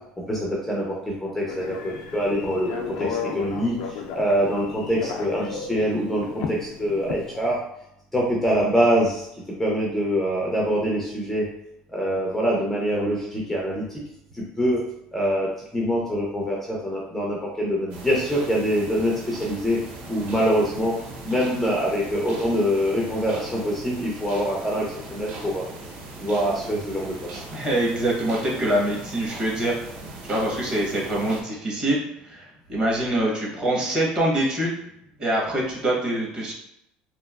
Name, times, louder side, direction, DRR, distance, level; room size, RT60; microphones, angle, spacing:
voice 1, 0.3-7.6 8.1-9.3 9.6-11.5 11.9-13.8 14.3-14.8 15.1-19.8 20.1-21.0 21.2-25.6 26.2-27.4, equal, 5° left, -4 dB, 0.4 m, -24 dB
Telephone, 1.5-7.5, left 6 dB, 85° left, 0.4 m, -34 dB
sound 1, 17.9-31.4, right 2 dB, 50° right, 0.6 m, -39 dB
voice 2, 27.5-29.8 30.2-34.7 35.2-36.5, right 1 dB, 30° right, -3 dB, 0.9 m, -24 dB
3.0 x 2.4 x 2.3 m, 0.80 s
cardioid pair, 155°, 3 cm